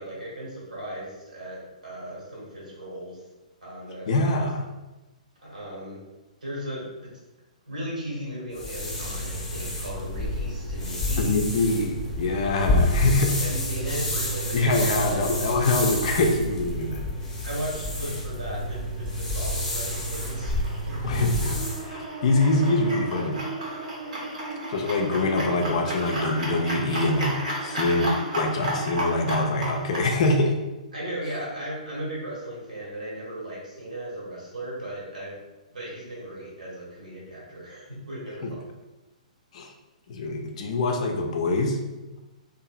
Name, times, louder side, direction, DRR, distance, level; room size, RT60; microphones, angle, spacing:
voice 1, 0.0-3.2 3.6-4.4 5.4-6.0 6.4-7.1 7.7-11.4 13.4-16.2 17.4-21.2 22.5-22.6 24.2-24.3 30.9-35.4 35.7-38.6, right 1 dB, 85° right, -6 dB, 1.3 m, -37 dB
voice 2, 4.1-4.6 11.2-13.4 14.5-17.0 21.0-23.4 24.7-27.3 27.6-30.6 38.4-38.5 39.5-39.7 40.1-41.8 42.1-42.2, left 2 dB, 55° left, 3 dB, 0.4 m, -24 dB
sound 1, 8.5-21.8, left 1 dB, 15° left, 0.7 m, -29 dB
sound 2, 19.6-30.1, right 1 dB, 70° right, 0.8 m, -34 dB
sound 3, 21.0-31.7, right 3 dB, 30° right, 0.5 m, -39 dB
2.7 x 2.4 x 2.3 m, 1.1 s
figure-of-eight pair, 120°, 4 cm